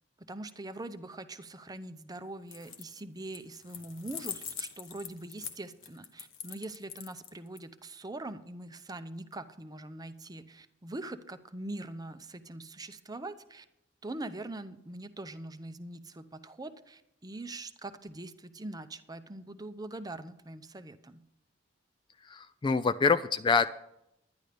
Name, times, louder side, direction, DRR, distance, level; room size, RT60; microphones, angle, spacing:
voice 1, 0.2-13.6 14.0-21.2, right 2 dB, 20° right, 11 dB, 0.6 m, -43 dB
sound 1, 2.4-3.0 3.3-7.6, left 8 dB, 80° left, 1.2 m, -43 dB
voice 2, 22.3-23.7, left 5 dB, 25° left, 12 dB, 0.3 m, -26 dB
11.0 x 10.5 x 5.0 m, 0.81 s
head